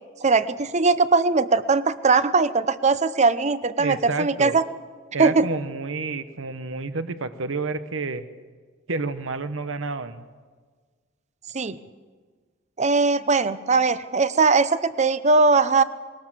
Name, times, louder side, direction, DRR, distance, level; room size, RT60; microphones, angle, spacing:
voice 1, 0.2-4.6 5.2-5.5 11.5-11.8 12.8-15.8, right 4 dB, 35° right, 14 dB, 0.8 m, -20 dB
voice 2, 3.8-4.6 5.1-8.2 8.9-10.3, right 3 dB, 80° right, 11 dB, 1.0 m, -29 dB
21.0 x 18.5 x 7.5 m, 1.5 s
head